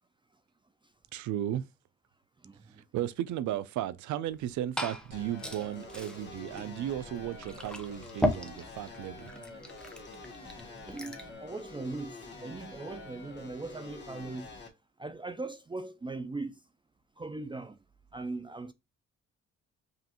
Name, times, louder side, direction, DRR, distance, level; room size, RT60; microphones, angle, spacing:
voice 1, 1.1-1.6 2.9-9.3, right 12 dB, 75° right, 0.5 m, -35 dB
voice 2, 2.4-2.8 10.6-14.5 15.0-16.6 17.2-17.8 18.1-18.7, right 3 dB, 15° right, 0.4 m, -40 dB
Liquid, 4.3-11.3, left 1 dB, 5° left, 0.7 m, -38 dB
sound 1, 5.1-14.7, left 3 dB, 35° left, 1.5 m, -47 dB
5.4 x 2.5 x 2.9 m
cardioid pair, 90°, 30 cm